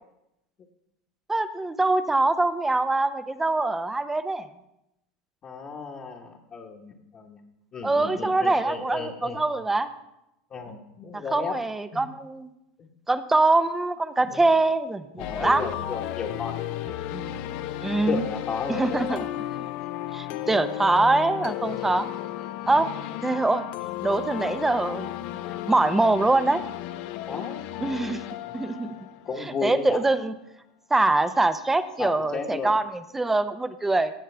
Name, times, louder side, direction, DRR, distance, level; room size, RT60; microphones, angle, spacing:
voice 1, 1.3-4.5 7.8-9.9 11.3-12.5 13.1-15.7 17.1-17.4 17.8-18.2 18.7-19.2 20.1-22.1 22.7-22.9 23.2-23.6 24.0-25.1 25.7-26.6 27.8-28.2 28.5-28.9 29.4-30.3 30.9-34.1, right 2 dB, 10° right, 12 dB, 0.7 m, -23 dB
voice 2, 5.4-7.4 7.7-9.4 10.5-11.6 14.3-14.4 15.2-16.7 17.3-17.5 18.1-19.3 27.3-27.7 29.2-30.0 32.0-32.8, left 5 dB, 35° left, -3 dB, 1.3 m, -34 dB
sound 1, 15.2-30.0, left 13 dB, 60° left, 0.6 m, -34 dB
16.0 x 7.4 x 3.4 m, 0.85 s
hypercardioid pair, 100°, 3 cm